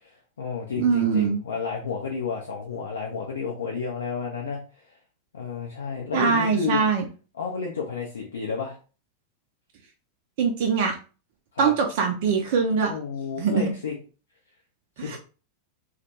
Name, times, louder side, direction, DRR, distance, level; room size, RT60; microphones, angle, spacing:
voice 1, 0.0-5.0 5.3-6.8 7.4-8.8 11.5-11.7 12.9-14.0 15.0-15.2, left 5 dB, 65° left, -1 dB, 0.4 m, -31 dB
voice 2, 0.8-1.4 6.1-7.1 10.4-11.0 11.6-12.9 13.4-13.7 15.0-15.2, right 6 dB, 50° right, 3 dB, 0.4 m, -22 dB
2.2 x 2.1 x 2.9 m, 0.36 s
figure-of-eight pair, 90°, 0 cm